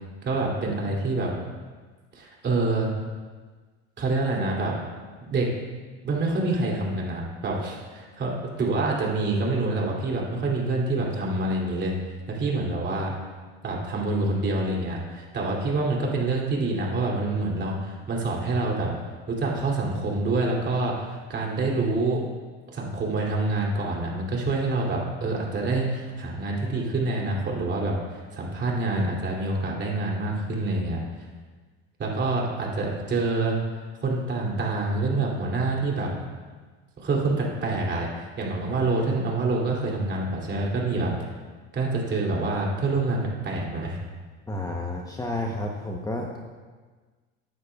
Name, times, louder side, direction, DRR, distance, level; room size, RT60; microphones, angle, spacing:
voice 1, 0.2-1.3 2.1-2.9 4.0-4.7 5.2-5.5 6.0-11.9 12.3-13.1 13.6-18.9 19.3-22.2 22.7-31.0 32.0-33.6 34.0-36.1 37.0-38.1 38.4-41.1 41.7-44.0, right 2 dB, 35° right, -2 dB, 2.9 m, -26 dB
voice 2, 44.5-46.4, left 1 dB, 10° left, 1 dB, 0.9 m, -31 dB
15.0 x 9.5 x 2.4 m, 1.4 s
supercardioid pair, 105°, 30 cm